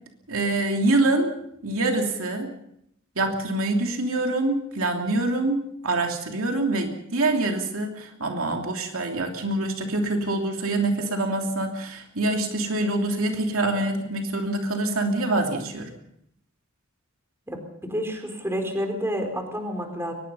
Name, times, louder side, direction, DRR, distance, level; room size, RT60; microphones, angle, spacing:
voice 1, 0.3-1.3 1.6-2.5 3.2-15.9, right 2 dB, 70° right, 3 dB, 3.1 m, -25 dB
voice 2, 17.5-20.1, equal, 10° right, 4 dB, 4.3 m, -29 dB
23.0 x 21.0 x 5.6 m, 0.75 s
head